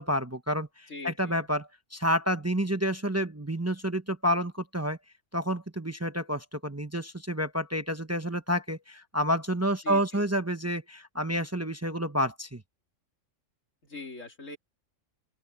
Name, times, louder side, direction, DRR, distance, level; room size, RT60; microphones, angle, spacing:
voice 1, 0.0-5.0 5.3-12.6, equal, 15° right, 0.9 m, -29 dB
voice 2, 0.9-1.5 9.8-10.2 13.8-14.6, left 3 dB, 75° left, 3.6 m, -42 dB
open air
omnidirectional pair, 1.3 m